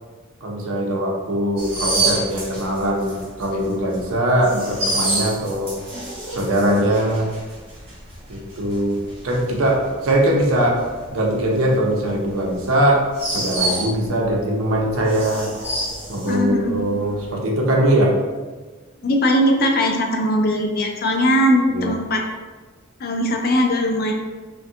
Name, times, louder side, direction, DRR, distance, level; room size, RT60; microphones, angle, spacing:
voice 1, 0.4-5.7 6.3-7.3 8.3-9.0 9.2-10.8 11.1-15.5 16.1-18.2 21.7-21.9, right 1 dB, 75° right, -1 dB, 0.6 m, -21 dB
sound 1, 1.6-14.4 14.7-16.8 17.1-17.3, right 2 dB, 30° right, 1.2 m, -28 dB
voice 2, 16.3-16.8 19.0-22.2 23.0-24.1, equal, 45° left, 2 dB, 0.4 m, -19 dB
3.4 x 2.2 x 2.7 m, 1.4 s
head